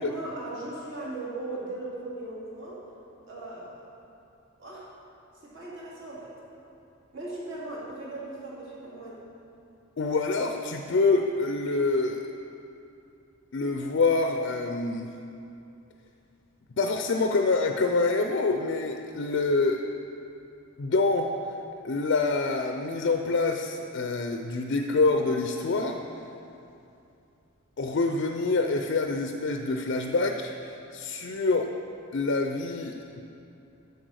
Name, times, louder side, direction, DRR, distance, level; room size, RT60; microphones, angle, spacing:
voice 1, 0.0-2.8 3.3-3.8 4.6-4.9 5.3-6.4 7.1-9.2, right 2 dB, 60° right, -6 dB, 2.4 m, -38 dB
voice 2, 10.0-12.2 13.5-15.1 16.8-19.8 20.8-21.3 21.8-26.0 27.8-31.7 32.1-33.2, left 3 dB, 55° left, 5 dB, 0.4 m, -26 dB
7.9 x 6.9 x 6.3 m, 2.7 s
head